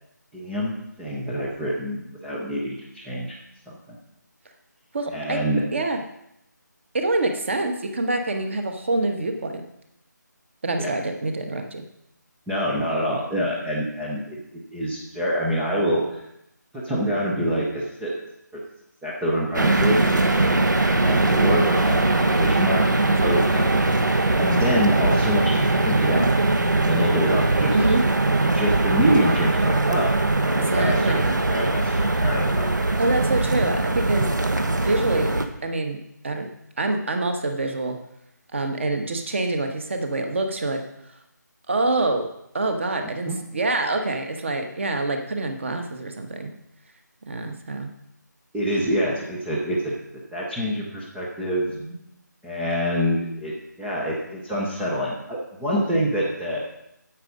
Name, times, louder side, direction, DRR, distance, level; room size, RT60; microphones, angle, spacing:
voice 1, 0.3-3.4 3.7-4.0 5.1-5.6 10.8-10.9 12.5-16.2 16.7-18.1 18.5-18.6 19.0-20.5 20.8-23.7 24.4-26.3 26.7-27.9 28.3-30.1 30.4-31.2 31.5-32.7 43.3-43.4 48.5-49.9 50.3-51.7 52.4-53.5 53.8-56.6, equal, ahead, -7 dB, 0.4 m, -26 dB
voice 2, 4.9-5.4 5.7-6.0 6.9-9.6 10.6-11.8 20.2-20.5 23.1-23.3 27.7-28.0 30.7-31.3 33.0-34.3 34.6-35.3 35.6-36.0 36.2-36.5 36.8-38.0 38.5-40.8 41.7-42.3 42.5-46.5 47.3-47.9 51.8-52.0, right 2 dB, 40° right, 5 dB, 1.3 m, -26 dB
sound 1, 19.5-35.5, right 2 dB, 70° right, 1.2 m, -21 dB
9.4 x 8.1 x 5.3 m, 0.79 s
figure-of-eight pair, 155°, 10 cm